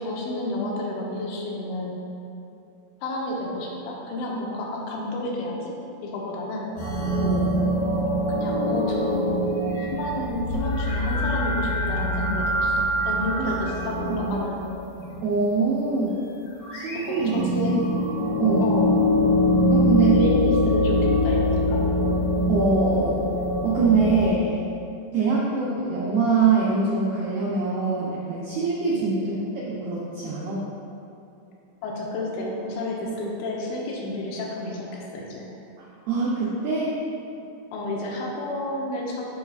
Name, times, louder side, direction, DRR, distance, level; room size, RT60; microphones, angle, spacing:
voice 1, 0.0-2.0 3.0-5.7 6.0-6.7 8.3-9.4 9.9-14.7 16.9-17.8 18.6-18.9 20.1-21.8 25.2-25.4 28.9-29.1 31.8-35.5 37.7-39.3, left 1 dB, 80° left, -2 dB, 3.1 m, -30 dB
sound 1, 6.8-15.4 16.5-24.3, left 1 dB, 55° left, 1.8 m, -24 dB
voice 2, 7.2-7.5 13.4-13.5 14.0-14.3 15.2-16.1 16.7-17.8 18.4-18.7 19.7-20.2 22.5-23.3 23.6-24.6 25.1-30.6 35.8-37.0, right 4 dB, 85° right, -5 dB, 2.1 m, -24 dB
12.5 x 4.8 x 2.4 m, 2.7 s
omnidirectional pair, 5.3 m